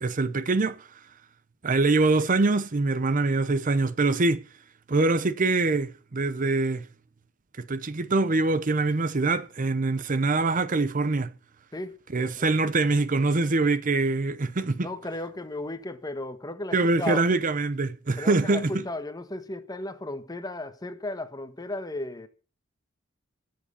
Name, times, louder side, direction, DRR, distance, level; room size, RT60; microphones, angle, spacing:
voice 1, 0.0-0.9 1.6-4.4 4.9-6.9 7.6-11.3 12.1-14.9 16.7-18.8, right 3 dB, 40° right, 0.7 m, -24 dB
voice 2, 14.8-17.2 18.2-22.3, left 2 dB, 20° left, 1.3 m, -35 dB
18.0 x 7.7 x 7.0 m
head